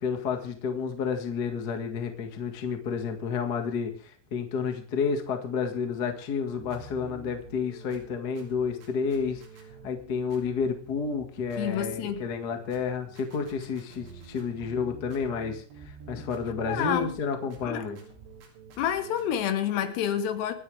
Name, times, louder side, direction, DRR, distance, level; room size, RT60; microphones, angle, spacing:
voice 1, 0.0-9.4 9.8-18.0, left 5 dB, 55° left, 1.1 m, -30 dB
sound 1, 6.5-19.4, right 5 dB, 85° right, 5.3 m, -49 dB
voice 2, 11.6-12.2 16.2-16.3 16.7-17.2 17.6-17.9 18.8-20.5, left 9 dB, 75° left, 3.3 m, -28 dB
26.0 x 10.5 x 3.5 m
omnidirectional pair, 5.1 m